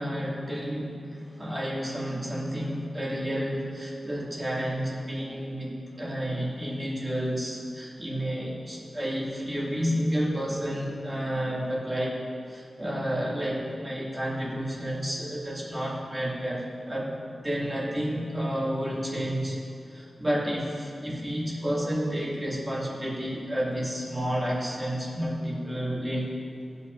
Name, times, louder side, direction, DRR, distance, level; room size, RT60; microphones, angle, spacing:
voice 1, 0.0-12.2 12.5-17.1 17.4-19.6 19.9-26.3, equal, 20° right, -6 dB, 2.5 m, -30 dB
18.5 x 8.2 x 2.7 m, 2.5 s
wide cardioid pair, 135°, 0 cm